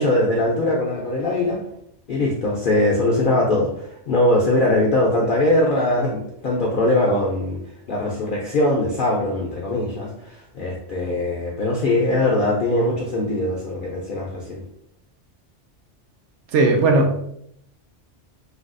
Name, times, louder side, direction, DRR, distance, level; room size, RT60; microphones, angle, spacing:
voice 1, 0.0-1.6 2.1-7.6 7.9-14.6, left 1 dB, 60° left, -2 dB, 0.6 m, -21 dB
voice 2, 16.5-17.2, right 2 dB, 75° right, 2 dB, 0.9 m, -17 dB
3.3 x 2.3 x 2.5 m, 0.74 s
omnidirectional pair, 1.2 m